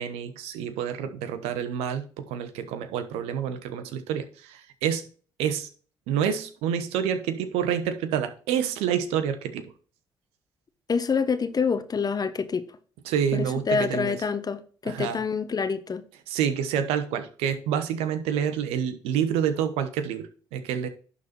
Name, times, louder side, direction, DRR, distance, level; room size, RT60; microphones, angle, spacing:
voice 1, 0.0-5.0 5.4-5.7 6.1-9.7 13.1-14.2 14.8-15.2 16.3-20.9, right 8 dB, 80° right, 1.1 m, -28 dB
voice 2, 10.9-12.7 13.3-16.0, left 5 dB, 40° left, 1.0 m, -27 dB
11.5 x 4.2 x 4.3 m
hypercardioid pair, 55°, 10 cm